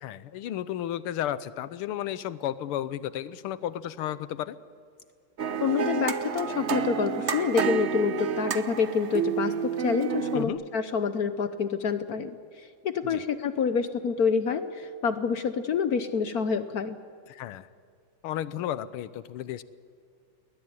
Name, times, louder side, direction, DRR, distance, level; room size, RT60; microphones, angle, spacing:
voice 1, 0.0-4.6 10.3-10.6 13.0-13.2 17.3-17.7 18.2-19.6, left 11 dB, 80° left, 16 dB, 1.7 m, -33 dB
sound 1, 5.4-10.5, right 6 dB, 55° right, 0.8 m, -29 dB
voice 2, 5.6-17.0, left 6 dB, 60° left, 11 dB, 1.0 m, -27 dB
21.0 x 19.5 x 9.6 m, 2.2 s
omnidirectional pair, 2.4 m